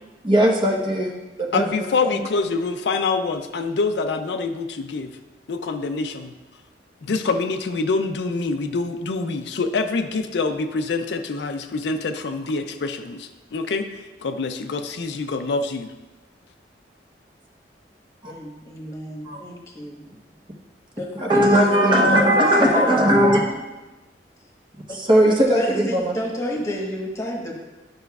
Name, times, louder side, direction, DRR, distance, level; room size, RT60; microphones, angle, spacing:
voice 1, 0.2-1.7 2.0-2.2 18.2-18.3 19.2-19.4 21.1-23.5 24.8-26.1, equal, 30° right, -1 dB, 0.9 m, -18 dB
voice 2, 1.5-5.1 5.5-6.3 7.0-15.9, left 3 dB, 75° left, 7 dB, 0.4 m, -25 dB
voice 3, 18.3-20.0 21.0-23.0 24.9-25.0 25.3-27.6, equal, 15° left, -2 dB, 1.2 m, -30 dB
11.0 x 5.6 x 2.3 m, 1.1 s
head